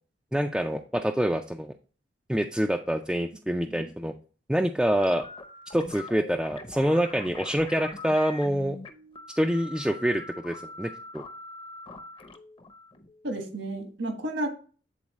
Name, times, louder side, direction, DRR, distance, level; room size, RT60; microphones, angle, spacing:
voice 1, 0.3-1.7 2.3-4.1 4.5-5.2 5.7-8.8 9.4-11.2, equal, 5° right, 3 dB, 0.3 m, -26 dB
sound 1, 5.0-13.9, left 2 dB, 30° left, 0.7 m, -44 dB
voice 2, 13.2-14.5, right 1 dB, 75° right, 4 dB, 1.5 m, -32 dB
8.4 x 4.0 x 3.0 m, 0.38 s
head